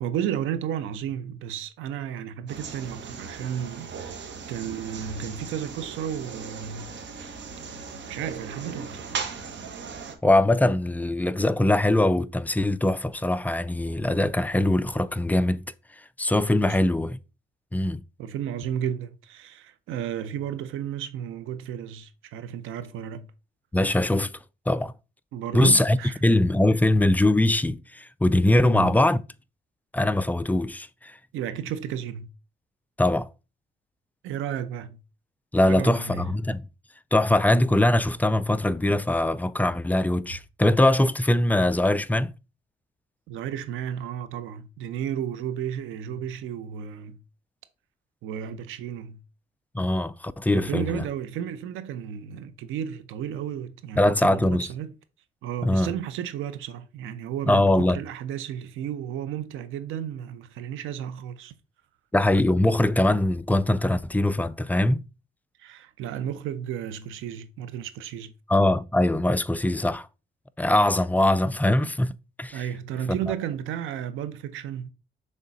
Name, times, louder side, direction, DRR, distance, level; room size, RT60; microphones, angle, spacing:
voice 1, 0.0-6.9 8.1-9.1 16.6-16.8 18.2-23.3 25.3-26.2 28.6-28.9 31.3-32.3 34.2-35.0 35.6-36.4 43.3-47.2 48.2-49.2 50.5-54.9 55.4-61.5 65.6-68.3 72.5-74.9, right 9 dB, 90° right, 0.7 m, -33 dB
sound 1, 2.5-10.1, right 5 dB, 65° right, 1.3 m, -38 dB
voice 2, 10.2-15.6 16.0-17.2 17.7-18.0 23.7-24.3 24.7-24.9 25.5-29.2 29.9-31.2 33.0-33.3 35.5-36.6 37.1-42.3 49.7-51.0 54.0-54.7 55.6-55.9 57.4-58.0 62.1-65.0 68.5-70.1 70.6-72.1 72.4-72.6 73.1-73.2, left 1 dB, 10° left, 0.4 m, -22 dB
6.5 x 3.6 x 4.1 m
cardioid pair, 90°, 20 cm